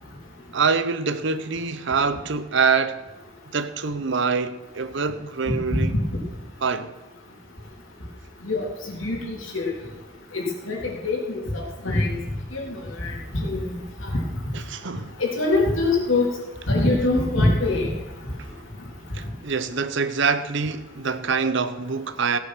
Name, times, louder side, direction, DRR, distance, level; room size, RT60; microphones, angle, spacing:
voice 1, 0.5-3.0 3.5-6.0 6.6-6.9 14.5-15.2 18.4-18.5 19.1-22.4, right 5 dB, 65° right, 0.8 m, -25 dB
voice 2, 8.4-9.7 10.3-12.2 12.5-13.6 14.0-14.2 15.2-16.3 16.7-17.9, left 2 dB, 75° left, 3.3 m, -24 dB
16.5 x 8.5 x 6.2 m
head